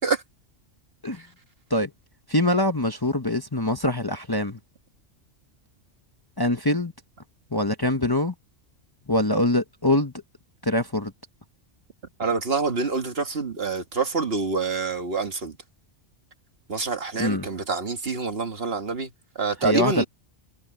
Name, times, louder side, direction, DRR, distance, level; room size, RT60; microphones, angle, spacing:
voice 1, 2.3-4.6 6.4-6.9 7.5-8.3 9.1-10.1 10.6-11.1 17.2-17.5 19.6-20.0, left 1 dB, 20° left, 1.1 m, -23 dB
voice 2, 12.2-15.5 16.7-19.1 19.3-20.0, right 4 dB, 50° right, 1.8 m, -26 dB
omnidirectional pair, 1.3 m